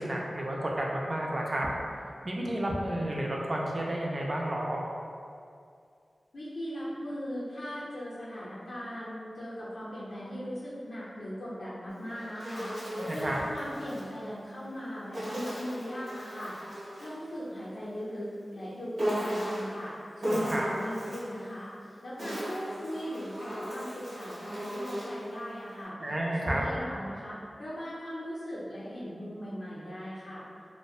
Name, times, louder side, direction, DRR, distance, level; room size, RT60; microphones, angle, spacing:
voice 1, 0.0-1.7 2.2-4.8 13.0-13.4 20.2-20.7 26.0-26.6, right 1 dB, 40° right, -2 dB, 0.3 m, -31 dB
voice 2, 6.3-16.6 17.0-21.7 22.0-26.0 26.3-30.4, equal, 70° left, -9 dB, 0.4 m, -39 dB
Insect, 11.9-14.1 15.1-17.2 19.0-19.8 20.2-21.3 22.0-25.2, equal, 70° right, 0.9 m, -36 dB
2.5 x 2.1 x 2.3 m, 2.4 s
wide cardioid pair, 95°, 0 cm